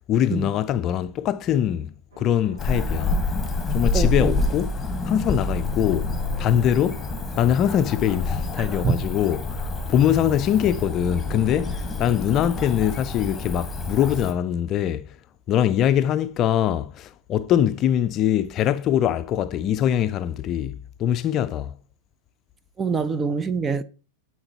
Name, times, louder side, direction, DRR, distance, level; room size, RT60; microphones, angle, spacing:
voice 1, 0.1-3.3 3.7-4.8 5.0-6.1 6.4-7.1 7.4-15.1 15.5-21.8, left 10 dB, 40° left, 0.4 m, -23 dB
sound 1, 2.1-12.0, right 1 dB, 80° right, 2.6 m, -49 dB
Cricket / Motor vehicle (road), 2.6-14.3, left 3 dB, 10° left, 1.4 m, -28 dB
voice 2, 3.9-4.3 8.6-9.0 22.8-23.8, right 5 dB, 20° right, 0.6 m, -25 dB
11.5 x 4.5 x 2.9 m
hypercardioid pair, 100°, 0 cm